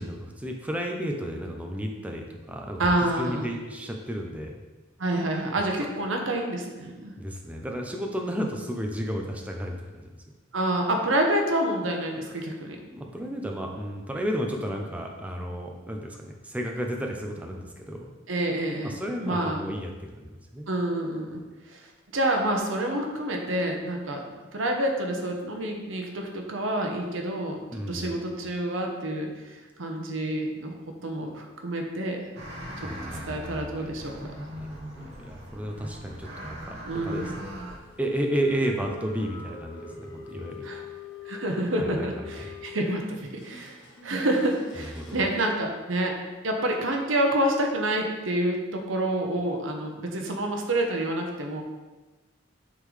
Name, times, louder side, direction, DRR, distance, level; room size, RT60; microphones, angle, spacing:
voice 1, 0.0-2.8 3.2-4.6 7.2-10.2 12.9-18.1 18.8-20.7 27.7-28.2 32.8-33.9 34.6-36.8 37.0-37.5 38.0-40.7 41.8-42.5 44.8-45.2, equal, 5° right, 1 dB, 0.6 m, -33 dB
voice 2, 2.8-3.4 5.0-7.1 10.5-12.8 18.3-19.6 20.7-21.4 21.7-21.9 22.1-24.2 24.5-27.6 27.9-30.7 31.0-32.2 32.8-32.9 33.3-34.1 36.8-37.3 40.6-40.8 41.2-46.2 46.4-51.6, right 1 dB, 80° right, 2 dB, 0.9 m, -28 dB
sound 1, 32.3-37.8, equal, 60° right, 1.1 m, -40 dB
sound 2, 37.2-45.5, left 6 dB, 75° left, 1.1 m, -45 dB
8.2 x 3.8 x 3.2 m, 1.2 s
head